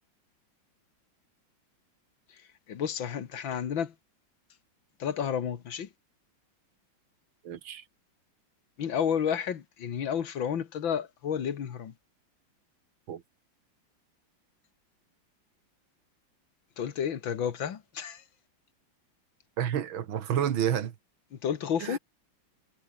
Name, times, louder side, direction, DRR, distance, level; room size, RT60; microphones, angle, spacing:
voice 1, 2.7-3.9 5.0-5.9 8.8-11.9 16.8-18.2 21.3-22.0, left 8 dB, 70° left, 2.3 m, -31 dB
voice 2, 7.4-7.8 13.1-13.2 19.6-20.9 21.8-22.0, right 9 dB, 80° right, 2.2 m, -29 dB
omnidirectional pair, 2.2 m